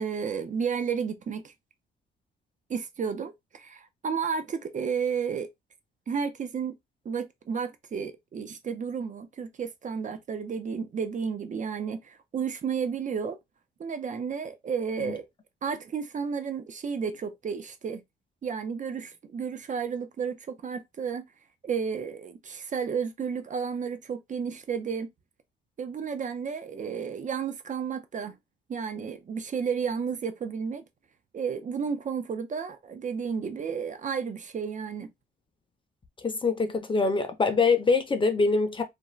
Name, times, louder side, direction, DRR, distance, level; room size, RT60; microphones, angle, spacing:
voice 1, 0.0-1.5 2.7-5.5 6.1-6.7 7.0-13.4 13.8-15.3 15.6-18.0 18.4-21.2 21.6-25.1 25.8-28.4 28.7-30.8 31.3-35.1, right 6 dB, 40° right, 0.5 m, -32 dB
voice 2, 36.2-38.8, left 4 dB, 25° left, 0.6 m, -24 dB
2.5 x 2.2 x 3.1 m
cardioid pair, 90°, 20 cm